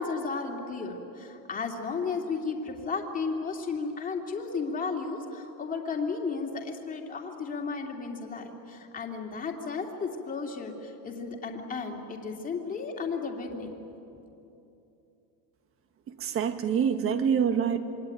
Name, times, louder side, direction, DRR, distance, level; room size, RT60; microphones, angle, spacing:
voice 1, 0.0-13.7, left 4 dB, 15° left, 2 dB, 2.6 m, -34 dB
voice 2, 16.1-17.8, right 7 dB, 25° right, 9 dB, 1.5 m, -26 dB
27.0 x 23.0 x 9.3 m, 2.9 s
supercardioid pair, 155°, 50 cm